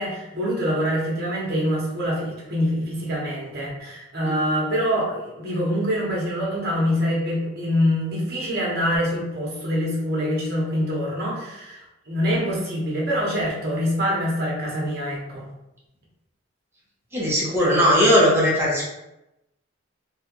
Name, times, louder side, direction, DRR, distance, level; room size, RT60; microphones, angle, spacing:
voice 1, 0.0-15.5 17.6-17.8, equal, 50° right, -4 dB, 1.0 m, -25 dB
voice 2, 17.1-18.9, equal, 10° right, -6 dB, 0.8 m, -18 dB
3.1 x 2.3 x 2.9 m, 0.92 s
head